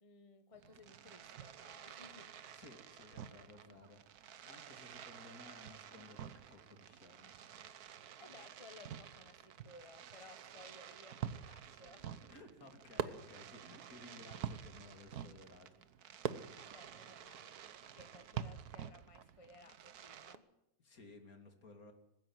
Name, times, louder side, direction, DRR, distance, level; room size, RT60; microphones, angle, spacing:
voice 1, 0.0-2.3 8.2-12.1 16.2-17.6 17.8-20.5, left 3 dB, 20° left, 8 dB, 1.4 m, -59 dB
Fireworks, 0.5-20.3, right 9 dB, 75° right, 1.4 m, -48 dB
voice 2, 2.5-4.0 4.4-7.3 12.1-15.7 20.8-21.9, left 2 dB, 65° left, 5 dB, 3.1 m, -57 dB
20.5 x 15.5 x 9.3 m, 0.85 s
omnidirectional pair, 1.6 m